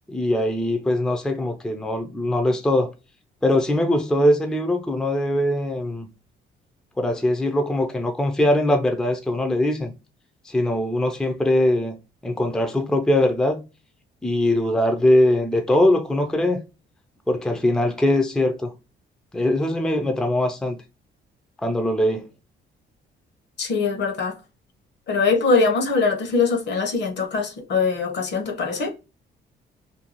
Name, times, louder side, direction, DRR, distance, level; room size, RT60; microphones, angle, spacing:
voice 1, 0.1-2.9 3.4-6.1 7.0-9.9 10.5-11.9 12.2-13.6 14.2-16.6 17.3-18.7 19.3-20.8 21.6-22.3, left 1 dB, 5° left, 0.4 m, -21 dB
voice 2, 23.6-24.3 25.1-28.9, left 4 dB, 60° left, 0.8 m, -22 dB
2.6 x 2.2 x 2.8 m
cardioid pair, 90°, 20 cm